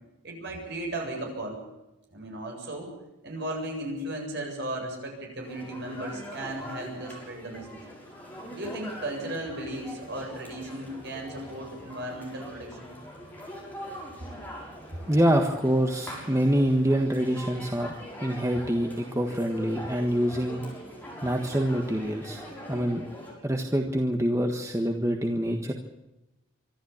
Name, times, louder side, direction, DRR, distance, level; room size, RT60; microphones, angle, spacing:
voice 1, 0.2-1.6 2.1-2.9 3.2-7.8 8.5-12.9, right 1 dB, 55° right, 1 dB, 7.8 m, -36 dB
sound 1, 5.4-23.3, equal, 10° left, 6.4 m, -43 dB
voice 2, 15.1-20.6 21.2-22.4 22.7-23.0 23.4-25.7, equal, 15° right, 3 dB, 1.5 m, -26 dB
25.5 x 13.0 x 8.8 m, 0.97 s
head